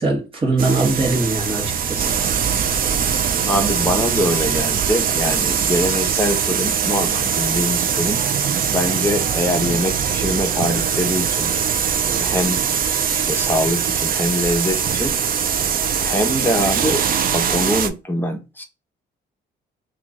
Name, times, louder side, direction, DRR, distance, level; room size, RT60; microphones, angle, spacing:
voice 1, 0.0-2.1, right 3 dB, 25° right, 1.3 m, -21 dB
sound 1, 0.6-17.9, right 7 dB, 45° right, 0.5 m, -21 dB
voice 2, 3.5-8.2 8.7-11.5 12.1-12.6 13.1-15.1 16.0-17.0 17.3-18.6, left 1 dB, 10° left, 0.9 m, -23 dB
2.9 x 2.4 x 3.7 m
cardioid pair, 90°, 20 cm